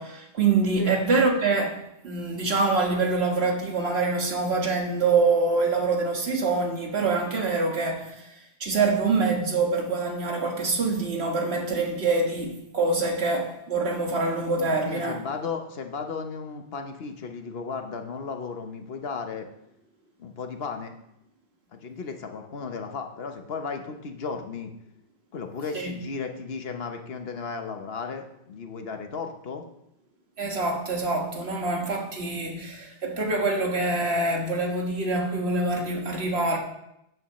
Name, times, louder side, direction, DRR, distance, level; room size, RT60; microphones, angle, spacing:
voice 1, 0.0-15.2 25.7-26.0 30.4-36.6, right 3 dB, 75° right, 1.9 m, -25 dB
voice 2, 14.7-19.5 20.2-20.9 21.7-24.7 25.3-29.6, left 5 dB, 70° left, 1.2 m, -35 dB
14.0 x 9.2 x 3.1 m
omnidirectional pair, 1.1 m